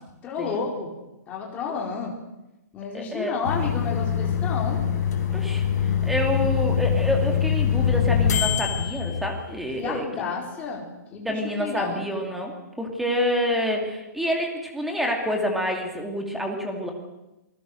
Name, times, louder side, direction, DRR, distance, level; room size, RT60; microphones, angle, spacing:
voice 1, 0.2-0.9 1.3-2.1 2.7-4.8 9.7-10.8 11.1-12.1, left 5 dB, 15° left, -1 dB, 4.2 m, -31 dB
voice 2, 2.9-3.4 5.3-10.1 11.2-16.9, equal, ahead, 2 dB, 2.8 m, -28 dB
sound 1, 3.4-9.9, left 8 dB, 65° left, 5.4 m, -24 dB
28.0 x 20.0 x 6.6 m, 0.97 s
hypercardioid pair, 170°, 10 cm